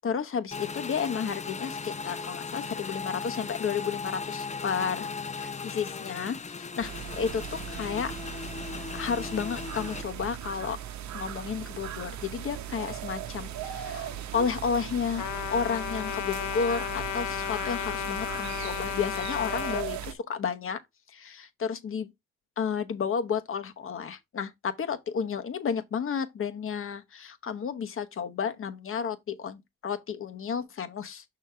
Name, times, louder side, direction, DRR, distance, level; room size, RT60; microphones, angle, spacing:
voice 1, 0.0-5.1 5.3-8.1 8.9-10.8 11.1-15.2 15.5-20.8 21.1-22.1 22.6-31.2, left 6 dB, 45° left, 1.0 m, -32 dB
Motorcycle / Engine, 0.5-10.0, left 5 dB, 25° left, 0.6 m, -37 dB
sound 1, 6.8-20.1, right 10 dB, 70° right, 0.9 m, -38 dB
Trumpet, 15.2-19.9, left 13 dB, 80° left, 0.7 m, -33 dB
6.2 x 3.9 x 4.4 m
cardioid pair, 90°, 30 cm